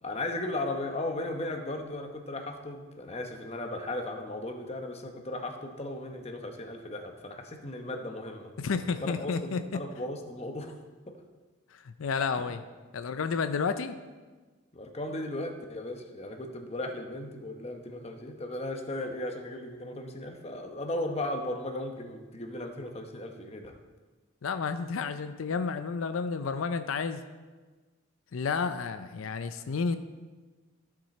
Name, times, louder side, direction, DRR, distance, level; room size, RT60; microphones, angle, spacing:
voice 1, 0.0-8.5 9.0-10.8 11.1-11.2 14.7-23.7, left 1 dB, 30° left, 4 dB, 0.9 m, -36 dB
voice 2, 8.6-9.6 11.7-12.6 12.9-14.0 24.4-27.2 28.3-30.0, left 5 dB, 90° left, 9 dB, 0.5 m, -31 dB
14.0 x 6.1 x 4.3 m, 1.3 s
head